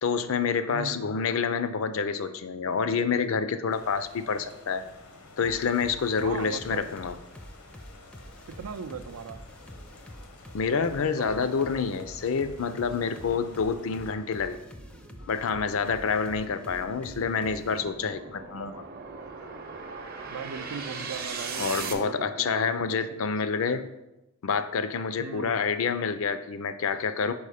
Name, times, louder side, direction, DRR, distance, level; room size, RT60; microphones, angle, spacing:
voice 1, 0.0-4.8 5.4-7.2 10.5-14.6 15.3-18.8 21.5-23.9 24.4-27.3, left 5 dB, 70° left, 12 dB, 0.4 m, -28 dB
voice 2, 0.7-1.0 6.2-6.8 8.6-9.4 10.7-11.5 20.3-23.2 25.2-25.6, right 6 dB, 90° right, 10 dB, 0.4 m, -39 dB
sound 1, 3.7-14.1, left 2 dB, 85° left, 0.9 m, -51 dB
sound 2, 5.4-17.8, equal, 5° left, 0.3 m, -47 dB
sound 3, 7.2-7.3 7.8-21.9, right 5 dB, 45° right, 0.7 m, -42 dB
5.5 x 4.7 x 4.9 m, 0.95 s
head